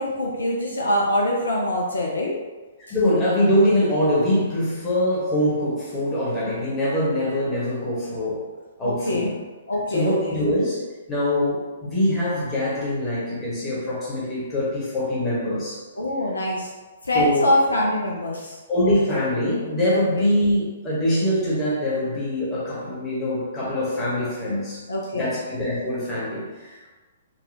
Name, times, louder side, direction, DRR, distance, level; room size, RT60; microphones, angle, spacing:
voice 1, 0.0-2.4 8.8-9.4 9.7-10.4 16.0-16.7 17.0-18.6 20.1-20.3 24.9-25.4, left 1 dB, 70° left, -2 dB, 0.5 m, -24 dB
voice 2, 2.9-8.5 8.8-9.3 9.9-10.8 11.1-15.8 17.1-17.5 18.7-24.8 25.1-26.9, left 1 dB, 20° left, -7 dB, 1.2 m, -23 dB
4.0 x 2.3 x 2.7 m, 1.3 s
figure-of-eight pair, 120°, 0 cm